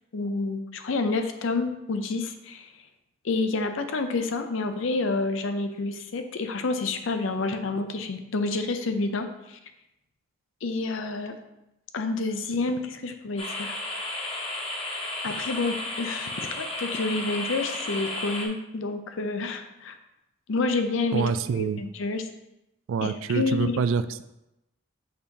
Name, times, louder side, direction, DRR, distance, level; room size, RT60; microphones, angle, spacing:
voice 1, 0.1-2.7 3.2-9.6 10.6-11.3 11.9-13.8 15.2-20.0 20.5-21.2 21.5-22.2 23.0-23.8, left 3 dB, 75° left, 8 dB, 0.5 m, -29 dB
sound 1, 13.4-18.5, left 2 dB, 30° left, 0.8 m, -33 dB
voice 2, 21.1-21.8 22.9-24.2, right 6 dB, 85° right, 13 dB, 0.3 m, -26 dB
6.6 x 2.9 x 5.2 m, 0.90 s
head